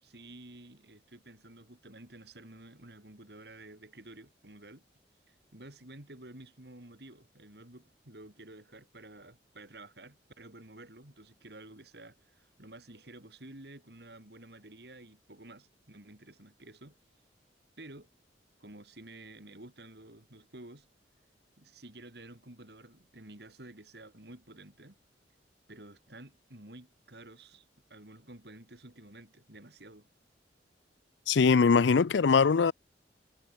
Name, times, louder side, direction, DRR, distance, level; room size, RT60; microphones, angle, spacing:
voice 1, 0.0-4.8 5.3-17.0 17.8-18.1 18.6-20.9 21.6-25.0 25.7-30.1, right 2 dB, 65° right, 3.4 m, -51 dB
voice 2, 31.3-32.7, left 5 dB, 80° left, 0.5 m, -22 dB
head